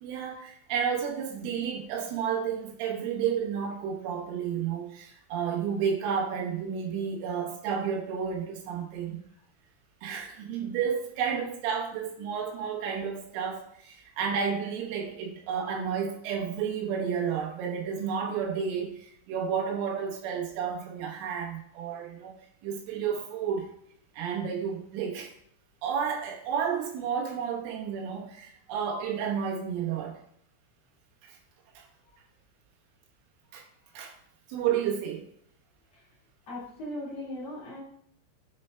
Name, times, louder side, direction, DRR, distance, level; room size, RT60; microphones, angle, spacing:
voice 1, 0.0-9.2 10.0-22.4 22.6-23.7 24.2-25.3 25.8-30.1 31.2-31.4 31.8-31.9 33.5-33.6 34.0-34.1 34.5-35.2, right 7 dB, 90° right, 0 dB, 3.6 m, -31 dB
voice 2, 36.5-37.8, left 1 dB, 50° left, -7 dB, 2.2 m, -38 dB
7.7 x 4.4 x 3.3 m, 0.68 s
omnidirectional pair, 5.5 m